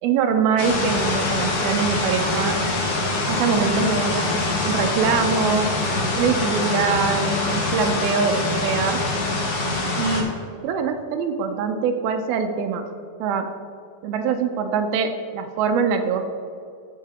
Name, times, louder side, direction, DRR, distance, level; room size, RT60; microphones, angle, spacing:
voice 1, 0.0-2.6 3.3-5.8 6.1-9.0 10.0-10.3 10.6-12.9 13.2-13.5 14.0-16.3, right 6 dB, 80° right, 5 dB, 2.2 m, -23 dB
sound 1, 0.6-10.2, left 2 dB, 60° left, 1.9 m, -24 dB
17.5 x 7.6 x 2.9 m, 2.4 s
omnidirectional pair, 5.0 m